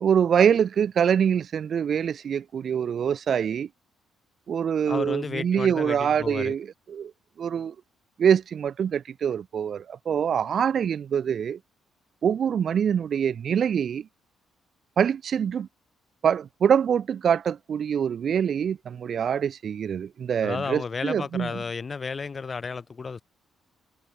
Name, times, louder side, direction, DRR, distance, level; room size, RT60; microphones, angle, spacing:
voice 1, 0.0-3.7 4.5-7.1 7.4-7.7 8.2-11.6 12.2-14.1 15.0-15.7 16.2-21.5, right 8 dB, 55° right, 0.8 m, -24 dB
voice 2, 4.9-6.6 20.4-23.2, left 5 dB, 35° left, 1.7 m, -32 dB
cardioid pair, 90°, 0 cm